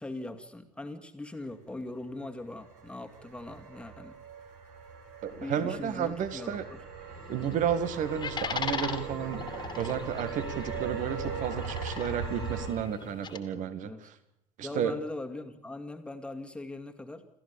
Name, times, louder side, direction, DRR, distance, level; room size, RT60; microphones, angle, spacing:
voice 1, 0.0-4.2 5.4-6.8 13.8-14.1 14.6-17.3, left 2 dB, 5° left, 5 dB, 2.3 m, -40 dB
sound 1, 2.1-12.7, right 5 dB, 60° right, 4.6 m, -40 dB
voice 2, 5.2-6.6 7.3-13.9 14.6-14.9, right 8 dB, 45° right, 12 dB, 2.0 m, -32 dB
sound 2, 7.0-13.4, left 5 dB, 25° left, 2.5 m, -39 dB
28.5 x 14.0 x 7.1 m, 0.80 s
figure-of-eight pair, 75°, 19 cm